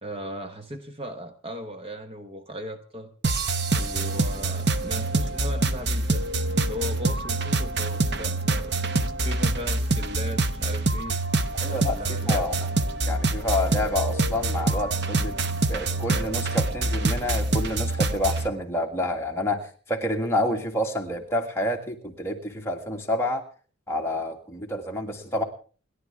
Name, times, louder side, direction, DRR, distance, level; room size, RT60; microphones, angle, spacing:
voice 1, 0.0-3.1 3.7-6.2 6.6-8.8 9.2-11.2 11.7-12.5, equal, 25° right, 7 dB, 1.0 m, -37 dB
sound 1, 3.2-18.5, right 2 dB, 50° right, 0.9 m, -25 dB
voice 2, 11.6-12.7 13.1-15.4 15.7-23.4 23.9-25.4, left 1 dB, 10° left, 1 dB, 1.9 m, -28 dB
29.0 x 11.5 x 3.6 m, 0.40 s
head